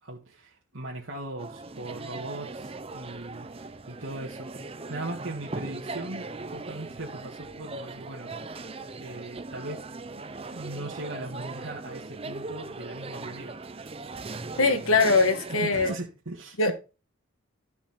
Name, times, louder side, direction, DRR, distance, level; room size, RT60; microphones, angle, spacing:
voice 1, 0.0-8.3 8.9-10.2 10.5-13.6 14.5-15.1 15.5-16.7, right 2 dB, 70° right, 1.9 m, -39 dB
sound 1, 1.4-16.0, right 3 dB, 30° right, 0.6 m, -39 dB
voice 2, 14.6-15.9 16.6-16.7, left 3 dB, 85° left, 1.7 m, -22 dB
12.0 x 5.8 x 4.4 m
head